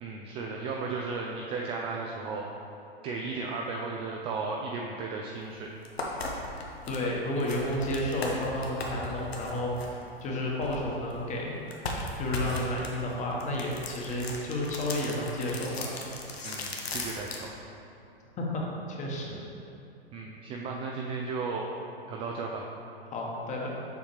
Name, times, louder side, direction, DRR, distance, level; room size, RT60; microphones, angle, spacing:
voice 1, 0.0-2.4 3.0-5.7 16.4-17.5 20.1-21.7 22.0-22.6, right 4 dB, 20° right, -1 dB, 0.3 m, -35 dB
sound 1, 5.4-5.5 5.8-11.2 11.7-17.5, left 2 dB, 80° left, 1.1 m, -38 dB
voice 2, 6.9-11.6 12.2-15.9 18.4-18.6 18.9-19.4 23.1-23.7, left 1 dB, 25° left, -2 dB, 1.2 m, -31 dB
7.1 x 5.6 x 3.2 m, 2.8 s
hypercardioid pair, 110°, 31 cm